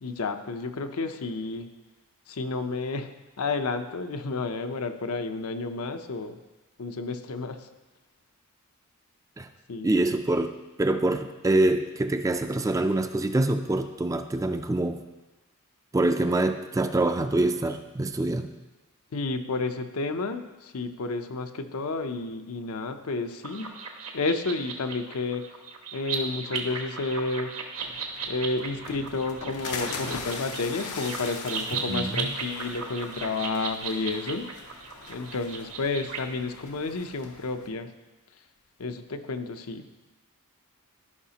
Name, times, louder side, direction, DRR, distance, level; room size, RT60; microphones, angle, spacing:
voice 1, 0.0-1.7 2.3-6.4 6.8-7.7 9.7-9.9 19.1-23.7 24.1-25.5 25.9-27.5 28.3-37.9 38.8-39.8, left 3 dB, 70° left, 8 dB, 0.6 m, -31 dB
voice 2, 9.8-15.0 15.9-18.5 31.9-32.3, right 2 dB, 15° right, 7 dB, 0.3 m, -25 dB
sound 1, 23.4-36.2, right 5 dB, 70° right, 1.1 m, -36 dB
sound 2, 27.8-37.7, left 4 dB, 90° left, 0.9 m, -41 dB
14.0 x 5.6 x 2.9 m, 1.1 s
head